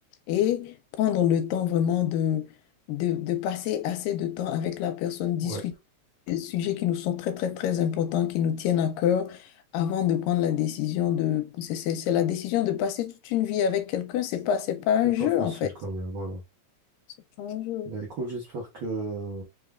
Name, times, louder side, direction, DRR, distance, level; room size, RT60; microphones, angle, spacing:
voice 1, 0.3-2.5 2.9-5.7 6.3-9.5 9.7-15.7 17.4-17.9, left 10 dB, 85° left, 2.3 m, -26 dB
voice 2, 15.2-16.4 17.8-19.4, right 2 dB, 80° right, 1.1 m, -34 dB
5.3 x 2.3 x 3.5 m
omnidirectional pair, 4.0 m